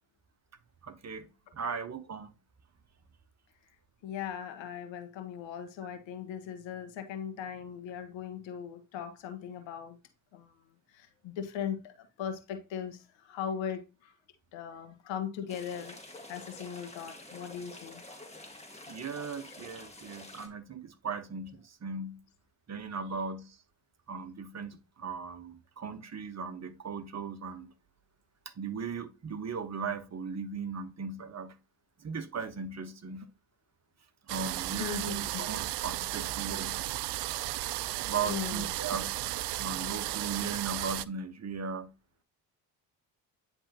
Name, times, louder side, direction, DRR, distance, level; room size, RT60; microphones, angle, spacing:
voice 1, 0.8-1.3 1.5-2.3 18.9-22.2 22.7-23.6 24.1-27.7 28.6-31.6 32.0-33.3 34.3-36.8 38.0-39.2 39.6-41.9, right 5 dB, 35° right, 1.1 m, -37 dB
voice 2, 4.0-10.0 10.3-10.5 10.9-14.1 14.5-16.0 16.3-18.0 34.8-35.5 38.2-38.7, left 8 dB, 65° left, 1.4 m, -39 dB
sound 1, 15.5-20.5, left 2 dB, 15° left, 2.2 m, -48 dB
sound 2, 34.3-41.1, right 16 dB, 60° right, 0.5 m, -34 dB
9.9 x 3.5 x 2.8 m
hypercardioid pair, 55°, 49 cm